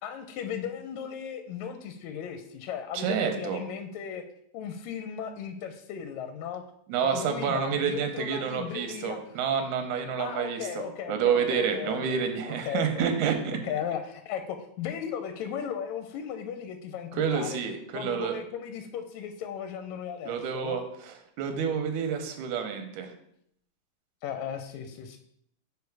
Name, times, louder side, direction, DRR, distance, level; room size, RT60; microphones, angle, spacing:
voice 1, 0.0-4.2 4.5-6.6 7.0-9.2 10.2-12.2 12.7-13.3 13.6-17.6 17.9-20.8 24.2-25.2, left 8 dB, 80° left, 7 dB, 1.8 m, -36 dB
voice 2, 2.9-3.6 6.9-13.6 17.1-18.4 20.3-23.1, right 7 dB, 90° right, 6 dB, 2.2 m, -29 dB
5.2 x 4.7 x 4.6 m, 0.71 s
omnidirectional pair, 3.4 m